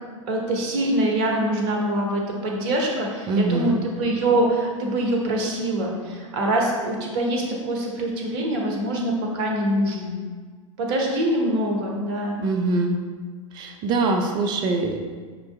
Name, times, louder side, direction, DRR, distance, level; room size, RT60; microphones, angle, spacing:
voice 1, 0.3-10.2 10.8-12.4, right 1 dB, 40° right, 0 dB, 0.9 m, -24 dB
voice 2, 3.3-3.8 12.4-13.0 13.5-15.0, right 3 dB, 25° right, 4 dB, 0.4 m, -23 dB
5.9 x 2.7 x 3.3 m, 1.5 s
figure-of-eight pair, 95°, 17 cm